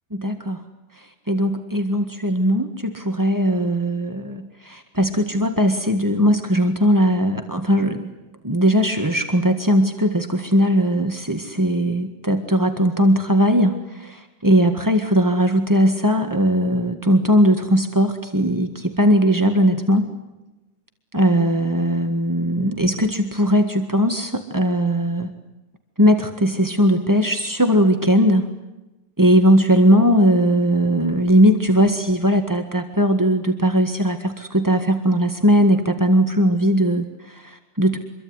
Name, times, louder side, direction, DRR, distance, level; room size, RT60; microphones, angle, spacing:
voice 1, 0.1-0.6 1.0-8.1 8.4-20.1 21.1-25.3 26.0-28.5 29.2-38.0, equal, 15° right, 5 dB, 0.7 m, -19 dB
26.5 x 23.0 x 9.7 m, 1.0 s
omnidirectional pair, 3.7 m